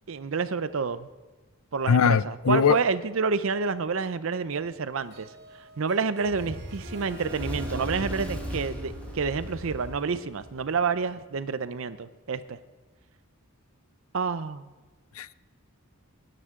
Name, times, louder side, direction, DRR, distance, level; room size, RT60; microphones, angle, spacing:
voice 1, 0.1-1.1 1.7-5.3 5.8-12.6 14.1-14.7, right 5 dB, 65° right, 14 dB, 0.5 m, -29 dB
voice 2, 1.9-2.8 15.2-15.3, left 6 dB, 70° left, 18 dB, 0.4 m, -21 dB
Harp, 5.0-10.5, right 2 dB, 50° right, 1.3 m, -44 dB
Fire, 6.2-10.8, equal, 5° left, 1.4 m, -37 dB
18.5 x 11.0 x 3.7 m, 1.3 s
head